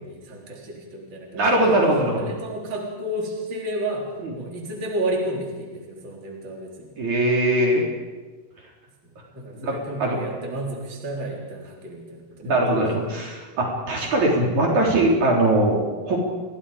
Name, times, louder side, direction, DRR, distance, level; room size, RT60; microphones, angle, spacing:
voice 1, 0.0-1.8 2.2-6.9 9.3-12.8, right 1 dB, 35° right, -1 dB, 4.4 m, -32 dB
voice 2, 1.3-2.3 4.2-4.3 7.0-7.9 9.6-10.2 12.4-15.8 16.0-16.2, right 1 dB, 55° right, -2 dB, 5.2 m, -21 dB
30.0 x 23.0 x 5.1 m, 1.3 s
omnidirectional pair, 4.0 m